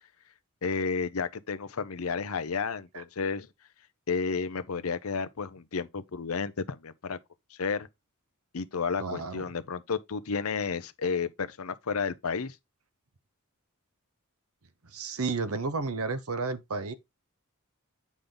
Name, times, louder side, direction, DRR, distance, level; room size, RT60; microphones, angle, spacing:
voice 1, 0.6-3.5 4.1-7.2 7.5-7.9 8.5-12.6, left 5 dB, 80° left, 0.7 m, -32 dB
voice 2, 9.0-9.5 14.8-16.9, right 4 dB, 90° right, 1.0 m, -32 dB
8.5 x 5.2 x 3.9 m
head